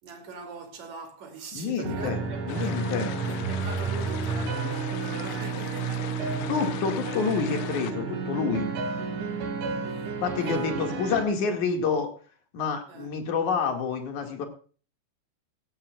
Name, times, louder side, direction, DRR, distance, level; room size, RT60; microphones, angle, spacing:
voice 1, 0.0-2.9 3.3-6.5 9.8-10.1 10.4-10.7 12.9-13.1, right 4 dB, 45° right, 3.4 m, -42 dB
voice 2, 1.5-2.2 2.5-3.1 6.5-8.7 10.2-12.1 12.5-14.5, left 5 dB, 50° left, 2.9 m, -28 dB
sound 1, 1.8-11.3, right 5 dB, 80° right, 4.8 m, -31 dB
sound 2, 2.5-7.9, left 15 dB, 80° left, 3.0 m, -40 dB
17.5 x 15.0 x 2.4 m
omnidirectional pair, 5.2 m